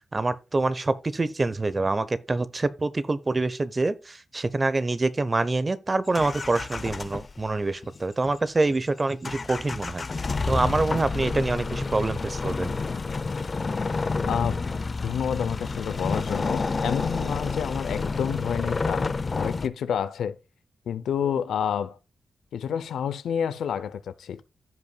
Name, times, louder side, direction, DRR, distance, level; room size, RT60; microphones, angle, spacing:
voice 1, 0.1-10.0 10.5-12.7, right 3 dB, 35° right, 0.9 m, -26 dB
sound 1, 6.1-7.6 7.8-8.0 8.2-8.8 9.2-19.7, left 4 dB, 45° left, 0.7 m, -29 dB
voice 2, 14.3-14.6 15.0-20.4 20.9-22.0 22.5-24.4, left 8 dB, 90° left, 0.6 m, -29 dB
15.0 x 5.4 x 2.3 m
cardioid pair, 60°, 0 cm